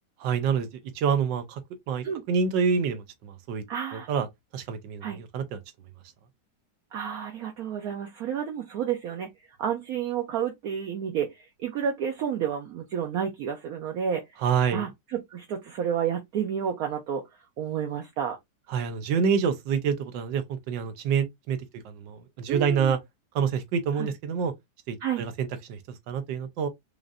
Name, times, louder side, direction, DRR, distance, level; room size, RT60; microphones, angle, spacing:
voice 1, 0.2-0.7 0.9-1.6 1.9-3.6 3.9-4.3 4.5-5.6 14.4-14.9 18.7-21.6 21.8-23.0 23.3-24.5 24.9-25.8 26.1-26.7, right 6 dB, 85° right, 1.4 m, -27 dB
voice 2, 3.7-4.1 5.0-5.2 6.9-9.3 9.6-14.2 14.7-17.2 17.6-18.4 22.5-23.0 24.0-24.1 25.0-25.2, right 8 dB, 65° right, 1.0 m, -30 dB
4.9 x 2.5 x 2.4 m
omnidirectional pair, 1.9 m